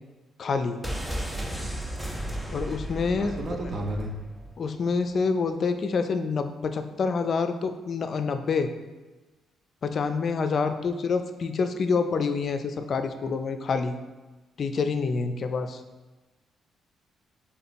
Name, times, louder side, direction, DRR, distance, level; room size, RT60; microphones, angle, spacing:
voice 1, 0.4-0.8 2.5-3.8 4.6-8.7 9.8-13.9 14.6-15.8, left 4 dB, 50° left, 8 dB, 0.4 m, -27 dB
sound 1, 0.8-4.6 4.9-5.0, right 1 dB, 5° right, 0.5 m, -34 dB
voice 2, 3.2-4.1, right 1 dB, 50° right, 2 dB, 0.6 m, -33 dB
3.6 x 2.9 x 4.2 m, 1.2 s
cardioid pair, 90°, 0 cm